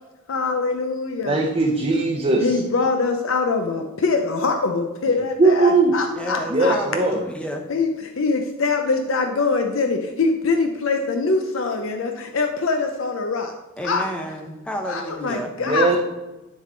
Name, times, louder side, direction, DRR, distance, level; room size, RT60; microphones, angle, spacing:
voice 1, 0.3-1.4 2.4-6.8 7.7-13.5 13.8-14.1 14.9-16.0, left 4 dB, 70° left, 4 dB, 0.6 m, -23 dB
voice 2, 1.3-2.6 5.4-5.9 6.5-7.2 15.6-16.0, right 3 dB, 30° right, -2 dB, 0.7 m, -19 dB
voice 3, 6.2-7.6 13.8-15.5, equal, 5° left, 2 dB, 0.6 m, -31 dB
10.0 x 3.7 x 3.8 m, 1.1 s
head